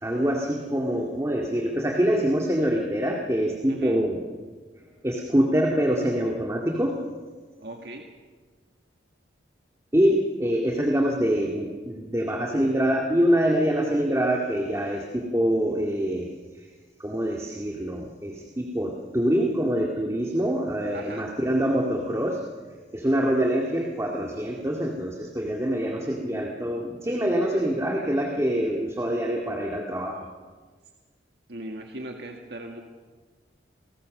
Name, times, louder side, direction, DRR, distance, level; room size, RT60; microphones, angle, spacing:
voice 1, 0.0-4.2 5.0-7.0 9.9-16.3 17.0-22.4 22.9-30.3, equal, 15° right, 0 dB, 2.1 m, -25 dB
voice 2, 3.7-4.0 7.6-8.1 20.9-21.3 31.5-32.8, right 1 dB, 65° right, 2 dB, 2.0 m, -37 dB
29.0 x 19.5 x 6.6 m, 1.4 s
head